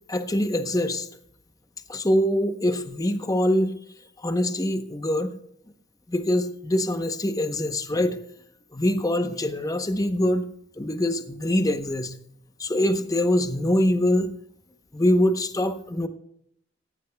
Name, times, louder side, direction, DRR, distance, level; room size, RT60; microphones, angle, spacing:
voice 1, 0.1-1.1 1.9-3.8 4.2-5.3 6.1-8.2 8.7-10.4 10.8-12.1 12.6-14.3 14.9-16.1, left 1 dB, 20° left, 9 dB, 0.8 m, -24 dB
18.0 x 15.5 x 2.2 m, 0.71 s
head